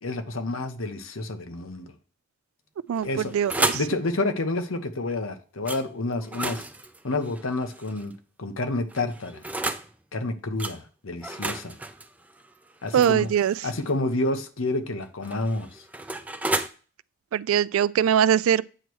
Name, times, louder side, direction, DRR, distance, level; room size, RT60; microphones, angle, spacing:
voice 1, 0.0-1.9 3.0-3.3 3.7-6.6 7.0-8.1 8.4-9.4 10.1-11.7 12.8-13.3 13.6-15.8, left 2 dB, 85° left, 1.0 m, -29 dB
voice 2, 2.9-3.8 12.9-13.5 17.3-18.6, right 9 dB, 85° right, 0.3 m, -22 dB
sound 1, 3.0-3.9 5.6-5.8 6.2-8.1 8.9-9.9 10.6-10.8 11.2-13.9 15.0-16.7, right 2 dB, 5° right, 0.4 m, -32 dB
8.8 x 3.2 x 6.2 m
head